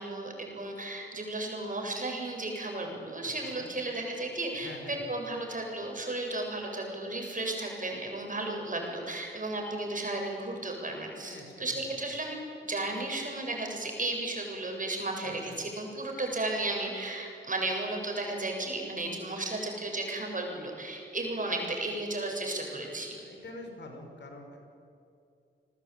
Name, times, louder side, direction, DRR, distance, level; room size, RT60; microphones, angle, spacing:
voice 1, 0.0-12.4 12.6-23.2, right 2 dB, 40° right, 2 dB, 7.6 m, -34 dB
voice 2, 3.2-3.7 4.6-5.0 11.2-11.6 15.3-15.5 23.2-24.6, left 2 dB, 65° left, 4 dB, 5.7 m, -46 dB
28.5 x 20.0 x 9.2 m, 2.6 s
cardioid pair, 60°, 20 cm